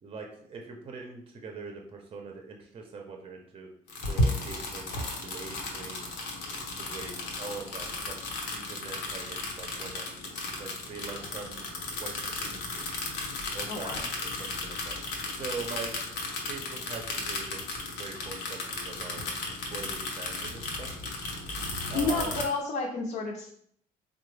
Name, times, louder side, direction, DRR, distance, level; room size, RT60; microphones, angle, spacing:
voice 1, 0.0-3.7 4.1-4.9 5.2-6.2 6.7-8.2 8.5-11.7 12.0-12.8 13.5-15.0 15.4-15.9 16.5-17.7 18.0-19.2 19.7-20.9 21.9-22.4, right 4 dB, 35° right, 2 dB, 0.6 m, -42 dB
sound 1, 3.9-22.4, left 2 dB, 90° left, 0.8 m, -34 dB
voice 2, 13.7-14.0 21.9-23.5, left 3 dB, 50° left, -2 dB, 0.6 m, -30 dB
3.7 x 2.0 x 3.2 m, 0.65 s
cardioid pair, 110°, 17 cm